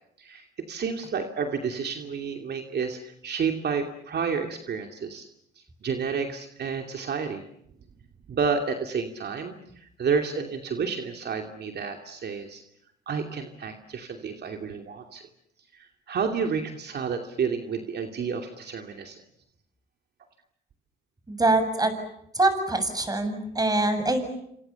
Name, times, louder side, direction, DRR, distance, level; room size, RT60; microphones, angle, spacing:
voice 1, 0.2-5.2 5.8-7.4 8.3-12.6 13.1-15.2 15.7-19.2, right 5 dB, 55° right, 4 dB, 2.7 m, -30 dB
voice 2, 21.3-21.9 22.3-24.2, right 2 dB, 20° right, 9 dB, 7.0 m, -24 dB
28.0 x 26.5 x 7.1 m, 0.76 s
cardioid pair, 90°, 20 cm